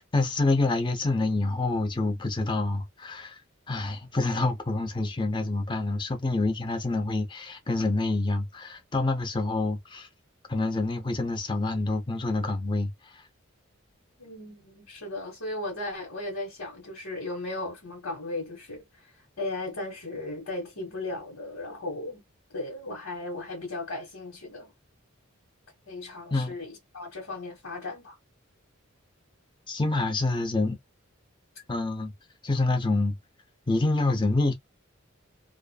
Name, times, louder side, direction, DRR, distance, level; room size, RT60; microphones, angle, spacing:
voice 1, 0.0-3.4 3.7-10.1 10.5-13.2 26.3-26.5 29.7-30.8 31.7-32.1 32.4-33.2 33.7-34.5, left 2 dB, 25° left, 0.6 m, -27 dB
voice 2, 14.2-18.8 19.4-22.2 22.5-24.7 25.9-28.2, left 2 dB, 85° left, 1.3 m, -36 dB
2.5 x 2.4 x 2.2 m
head